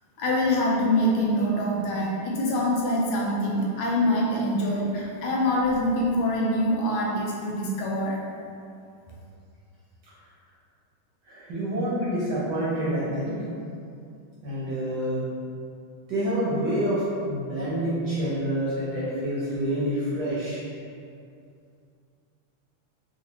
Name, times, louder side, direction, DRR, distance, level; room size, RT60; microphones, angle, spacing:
voice 1, 0.2-8.2, left 1 dB, 75° left, -3 dB, 1.3 m, -24 dB
voice 2, 11.3-13.3 14.4-15.2 16.1-20.6, right 1 dB, 65° right, -8 dB, 1.1 m, -27 dB
3.9 x 2.4 x 2.9 m, 2.4 s
omnidirectional pair, 2.4 m